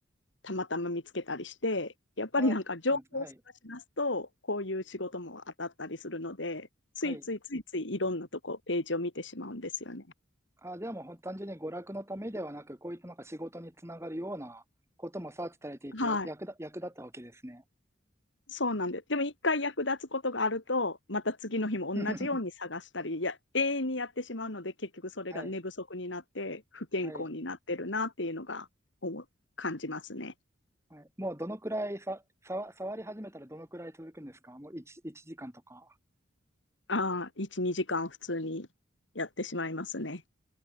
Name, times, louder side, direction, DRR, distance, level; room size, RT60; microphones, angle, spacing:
voice 1, 0.4-3.3 3.6-6.7 7.0-10.0 15.9-16.3 18.5-28.7 29.0-29.2 29.6-30.3 36.9-38.7 39.1-40.2, left 2 dB, 75° left, 3.3 m, -33 dB
voice 2, 2.9-3.3 7.0-7.2 10.6-14.6 15.0-17.6 22.0-22.4 25.3-25.5 27.0-27.2 30.9-35.9, right 1 dB, 15° right, 5.2 m, -40 dB
head